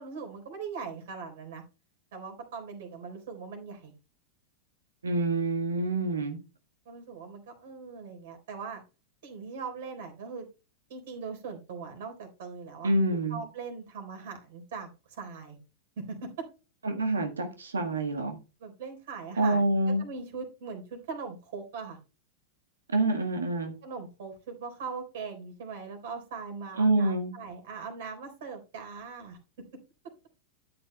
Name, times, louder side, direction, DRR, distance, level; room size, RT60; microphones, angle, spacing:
voice 1, 0.0-1.6 2.1-3.9 6.9-8.8 9.2-10.5 10.9-12.9 13.3-15.6 16.0-16.5 18.6-22.0 23.8-29.4, right 5 dB, 55° right, 3 dB, 3.8 m, -40 dB
voice 2, 5.0-6.4 12.8-13.4 16.8-18.4 19.4-20.0 22.9-23.7 26.8-27.3, right 2 dB, 70° right, 5 dB, 1.4 m, -27 dB
12.5 x 9.0 x 2.2 m, 0.31 s
figure-of-eight pair, 90°, 0 cm